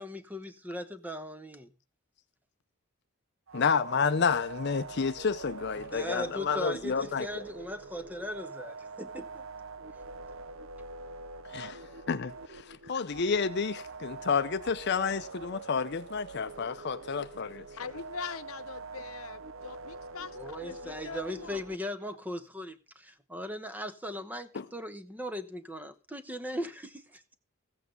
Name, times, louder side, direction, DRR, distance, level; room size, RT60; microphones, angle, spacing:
voice 1, 0.0-1.7 5.8-9.4 20.3-27.2, equal, 10° right, 1.0 m, -38 dB
voice 2, 3.5-7.3 11.5-11.8 12.1-17.6 24.5-24.6, left 5 dB, 50° left, 0.6 m, -30 dB
sound 1, 3.5-21.8, right 3 dB, 65° right, 0.7 m, -45 dB
voice 3, 17.8-21.6, left 5 dB, 80° left, 0.9 m, -42 dB
15.0 x 8.4 x 5.3 m
head